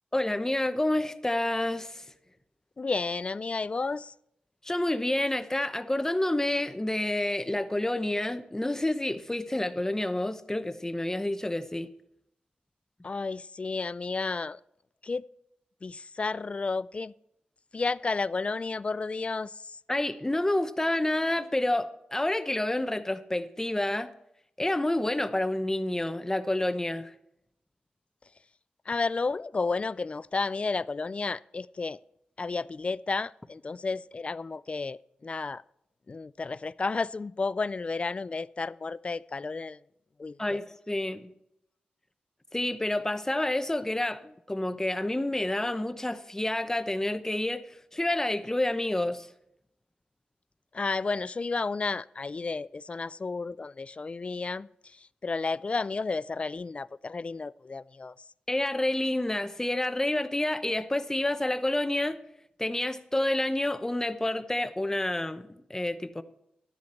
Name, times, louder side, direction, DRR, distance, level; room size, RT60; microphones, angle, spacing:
voice 1, 0.1-2.0 4.6-11.9 19.9-24.1 24.6-27.1 40.4-41.3 42.5-49.3 58.5-62.2 62.6-66.2, left 1 dB, 15° left, 0.8 m, -29 dB
voice 2, 2.8-4.1 13.0-14.6 15.0-15.3 15.8-17.1 17.7-19.8 28.9-32.0 32.4-35.6 36.1-39.8 40.2-40.6 50.7-58.1, left 4 dB, 40° left, 0.3 m, -32 dB
12.5 x 10.5 x 4.3 m
cardioid pair, 55°, 3 cm